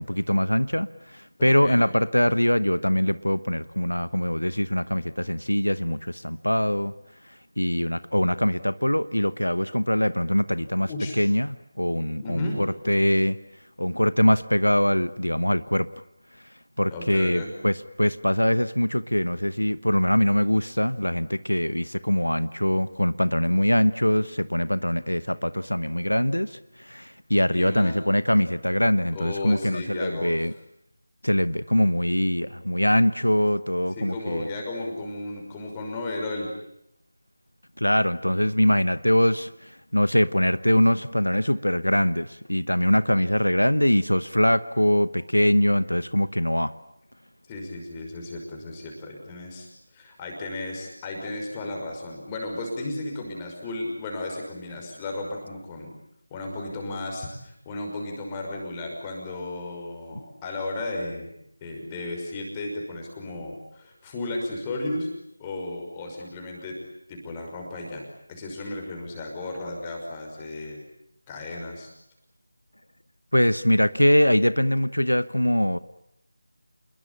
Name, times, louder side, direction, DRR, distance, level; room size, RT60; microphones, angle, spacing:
voice 1, 0.0-6.9 7.2-10.9 11.2-13.4 13.8-15.9 16.8-30.5 31.2-34.5 37.8-46.7 73.3-75.8, equal, 90° left, 15 dB, 1.0 m, -23 dB
voice 2, 1.4-1.8 10.9-11.2 12.2-12.6 16.9-17.5 27.5-28.0 29.1-30.5 34.0-36.5 47.5-56.0 56.3-61.3 61.6-65.1 65.4-66.8 67.1-70.8 71.3-71.9, left 2 dB, 15° left, 0 dB, 5.8 m, -34 dB
28.0 x 21.5 x 8.7 m, 0.79 s
figure-of-eight pair, 165°, 0 cm